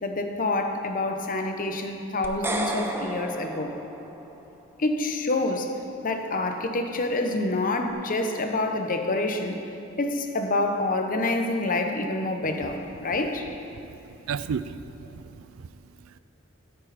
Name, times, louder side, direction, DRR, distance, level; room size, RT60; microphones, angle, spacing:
voice 1, 0.0-3.7 4.8-5.7 6.0-9.6 10.0-13.5, left 2 dB, 40° left, 5 dB, 0.9 m, -27 dB
sound 1, 2.2-4.5, right 2 dB, 10° right, 0.6 m, -32 dB
voice 2, 14.2-16.2, right 6 dB, 75° right, 14 dB, 0.4 m, -35 dB
13.5 x 9.5 x 4.2 m, 2.7 s
head